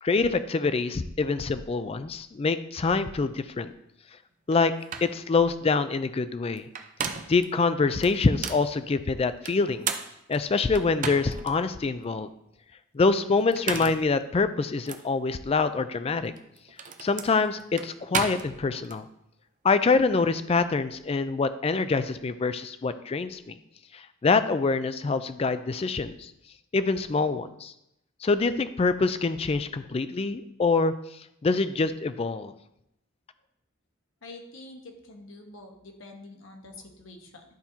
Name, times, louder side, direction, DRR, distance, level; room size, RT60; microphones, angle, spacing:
voice 1, 0.0-3.7 4.5-4.7 5.0-6.7 7.3-9.9 10.3-12.3 12.9-16.3 17.0-19.0 19.6-23.6 23.9-26.3 26.7-27.7 28.2-30.9 31.4-32.5, left 4 dB, 30° left, 12 dB, 0.3 m, -25 dB
sound 1, 4.5-4.6 4.9-5.2 6.6-7.4 8.0-8.7 9.4-11.5 12.0-12.1 13.4-14.1 14.9-15.0 16.2-19.0, right 6 dB, 40° right, 0.5 m, -34 dB
voice 2, 34.2-37.4, left 2 dB, 75° left, 3 dB, 1.2 m, -46 dB
12.0 x 4.3 x 2.8 m, 0.80 s
head